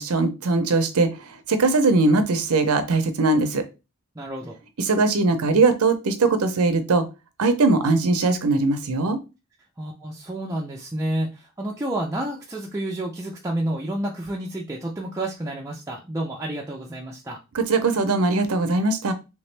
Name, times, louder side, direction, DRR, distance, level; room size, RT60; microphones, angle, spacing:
voice 1, 0.0-3.6 4.8-7.1 7.4-9.2 17.5-19.1, right 3 dB, 80° right, 9 dB, 0.6 m, -20 dB
voice 2, 4.2-4.6 9.8-17.4, right 1 dB, 15° right, -2 dB, 0.5 m, -30 dB
3.4 x 3.0 x 3.3 m, 0.28 s
head